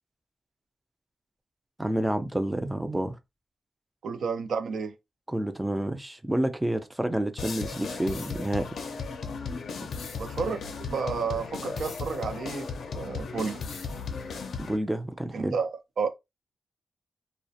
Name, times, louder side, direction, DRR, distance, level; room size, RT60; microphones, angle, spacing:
voice 1, 1.8-3.2 5.3-8.7 14.6-15.5, right 1 dB, 10° right, 0.3 m, -29 dB
voice 2, 4.0-4.9 10.2-12.7 12.9-13.6 15.3-15.7 16.0-16.1, right 5 dB, 80° right, 0.4 m, -31 dB
sound 1, 7.4-14.8, left 5 dB, 75° left, 0.4 m, -36 dB
2.4 x 2.0 x 2.6 m
wide cardioid pair, 115°, 0 cm